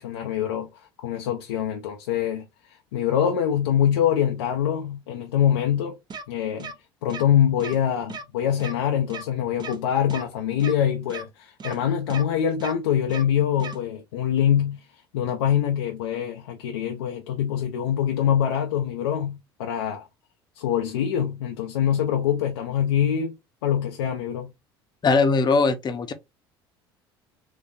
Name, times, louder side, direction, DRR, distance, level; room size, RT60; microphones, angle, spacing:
voice 1, 0.0-2.4 2.9-6.0 6.3-6.7 7.0-14.8 15.1-20.0 20.6-23.3 23.6-24.5, left 9 dB, 80° left, 0.6 m, -24 dB
sound 1, 6.1-6.2 6.6-6.7 7.1-7.2 7.6-7.8 8.1-8.2 8.6-8.7 9.1-9.2 9.6-9.8 10.1-10.2 10.6-10.7 11.1-11.2 11.6-11.8 12.1-12.2 12.6-12.7 13.1-13.2 13.6-13.8, right 4 dB, 35° right, 0.9 m, -36 dB
voice 2, 25.0-26.1, left 4 dB, 35° left, 0.8 m, -20 dB
3.8 x 2.6 x 2.6 m
hypercardioid pair, 65°, 13 cm